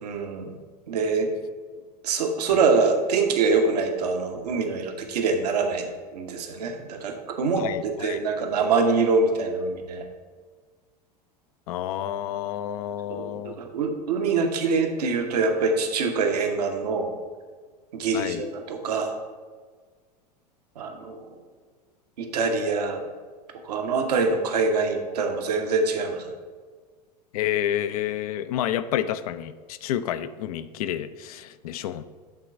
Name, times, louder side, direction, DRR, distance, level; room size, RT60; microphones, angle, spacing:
voice 1, 0.0-0.5 0.9-1.3 2.0-7.7 8.0-10.0 13.1-17.1 17.9-19.1 20.8-21.3 22.2-23.0 23.6-26.3, right 4 dB, 70° right, 4 dB, 1.0 m, -24 dB
voice 2, 7.6-8.2 11.7-13.6 18.1-18.4 27.3-32.0, left 11 dB, 60° left, 12 dB, 0.4 m, -29 dB
8.1 x 3.8 x 5.1 m, 1.5 s
figure-of-eight pair, 85°, 21 cm